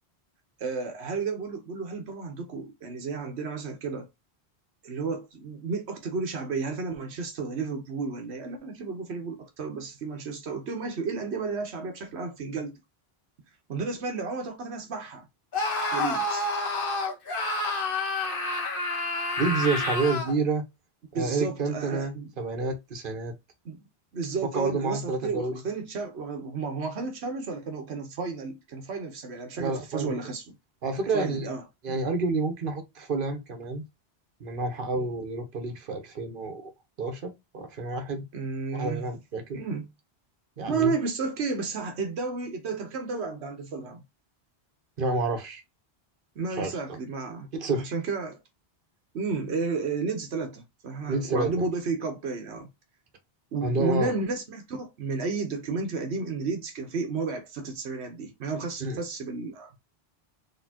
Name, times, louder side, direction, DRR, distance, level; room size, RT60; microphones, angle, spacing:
voice 1, 0.6-4.1 4.8-12.8 13.7-15.2 15.9-16.5 21.1-22.3 23.6-23.8 24.1-30.4 31.1-31.6 38.3-39.0 39.5-39.9 40.7-44.0 46.4-48.4 49.1-52.7 53.5-59.7, right 4 dB, 85° right, 1.2 m, -32 dB
Screaming, 15.5-20.4, left 2 dB, 55° left, 1.3 m, -28 dB
voice 2, 19.4-20.6 21.1-23.3 24.5-25.6 29.6-30.2 30.8-31.5 31.8-33.8 34.4-36.7 37.0-38.3 38.7-39.6 40.6-40.9 45.0-45.6 46.6-46.7 47.5-47.9 51.1-51.5 53.6-54.1 58.8-59.0, right 3 dB, 55° right, 1.2 m, -29 dB
4.2 x 3.4 x 2.8 m
omnidirectional pair, 1.1 m